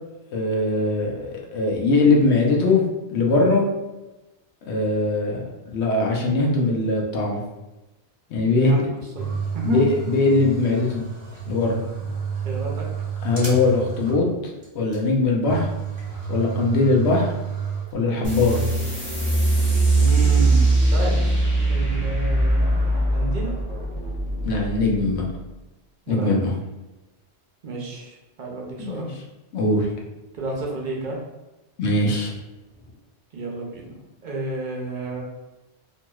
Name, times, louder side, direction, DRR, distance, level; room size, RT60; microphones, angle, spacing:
voice 1, 0.3-2.8 3.1-3.6 4.7-7.4 8.3-8.8 9.6-11.0 11.5-11.8 13.2-15.7 16.3-17.3 17.9-18.6 24.4-25.2 26.1-26.5 28.8-29.0 29.5-29.9 31.8-32.3, left 2 dB, 80° left, -1 dB, 0.9 m, -21 dB
voice 2, 8.5-8.9 9.1-9.9 12.0-12.1 12.4-12.8 19.9-21.2 21.7-23.5 26.1-26.5 27.6-29.1 30.4-31.2 33.3-35.2, right 2 dB, 50° right, -2 dB, 0.7 m, -31 dB
sound 1, 9.2-14.4 14.6-14.7 14.9-15.0 15.4-18.3, right 6 dB, 30° right, 1.0 m, -31 dB
sound 2, 18.2-25.4, right 2 dB, 15° left, 0.6 m, -21 dB
2.9 x 2.7 x 2.2 m, 1.0 s
omnidirectional pair, 1.1 m